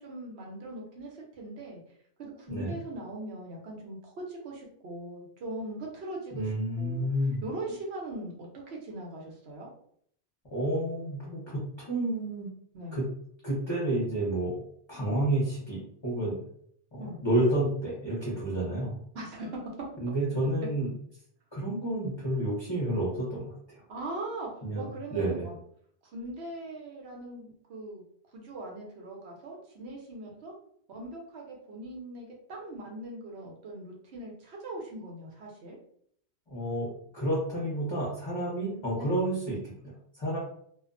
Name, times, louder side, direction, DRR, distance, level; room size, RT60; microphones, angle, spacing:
voice 1, 0.0-1.8 2.2-6.5 6.8-7.1 7.4-9.7 12.7-13.0 17.0-17.2 19.1-19.6 23.9-25.6 26.1-28.0 28.3-30.5 30.9-35.8 39.0-39.1, right 1 dB, 70° right, -1 dB, 1.0 m, -40 dB
voice 2, 6.3-7.4 10.5-12.5 12.9-13.1 13.4-14.6 14.9-16.4 16.9-19.0 20.0-20.9 21.5-23.8 24.6-25.4 36.5-40.4, right 1 dB, 30° left, -8 dB, 0.7 m, -30 dB
2.4 x 2.1 x 2.4 m, 0.65 s
omnidirectional pair, 1.1 m